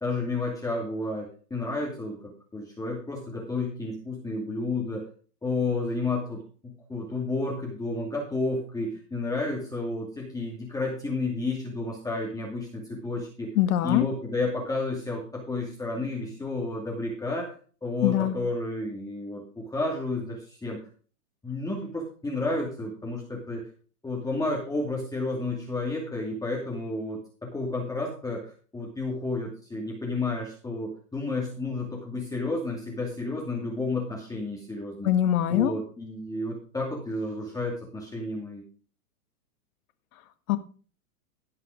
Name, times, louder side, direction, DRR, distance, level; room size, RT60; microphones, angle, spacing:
voice 1, 0.0-5.1 5.4-13.5 13.8-17.5 17.8-20.9 21.4-23.6 24.0-35.1 35.5-38.6, left 2 dB, 5° left, -2 dB, 2.5 m, -31 dB
voice 2, 13.5-14.0 18.0-18.3 35.0-35.7 40.5-40.6, left 12 dB, 60° left, 11 dB, 1.6 m, -22 dB
17.0 x 5.8 x 5.1 m, 0.40 s
hypercardioid pair, 135°, 47 cm